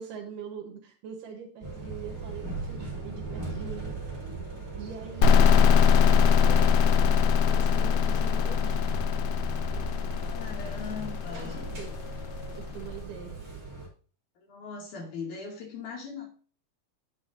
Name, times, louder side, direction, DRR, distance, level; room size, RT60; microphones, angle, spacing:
voice 1, 0.0-3.9 4.8-5.7 6.0-8.9 10.7-10.8 11.3-12.2 12.5-13.4, right 6 dB, 80° right, 1 dB, 2.7 m, -43 dB
sound 1, 1.6-13.9, right 3 dB, 25° right, 3.6 m, -38 dB
sound 2, 5.2-12.8, left 7 dB, 85° left, 1.6 m, -22 dB
voice 2, 10.2-11.7 14.4-16.3, left 5 dB, 65° left, -1 dB, 3.7 m, -40 dB
9.8 x 8.1 x 2.7 m, 0.41 s
omnidirectional pair, 3.8 m